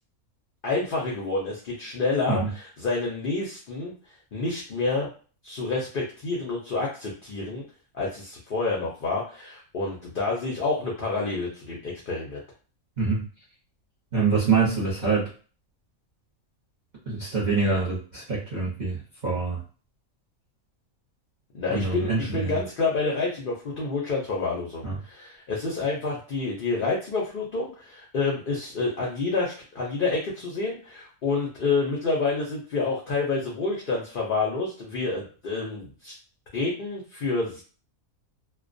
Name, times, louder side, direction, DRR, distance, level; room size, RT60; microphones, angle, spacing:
voice 1, 0.6-3.9 4.3-5.1 5.4-7.6 7.9-12.4 21.5-36.1 36.5-37.6, left 3 dB, 55° left, -3 dB, 0.6 m, -28 dB
voice 2, 14.1-15.3 17.1-19.6 21.7-22.6 24.8-24.9, right 4 dB, 40° right, -7 dB, 0.8 m, -25 dB
2.2 x 2.2 x 2.5 m, 0.38 s
omnidirectional pair, 1.5 m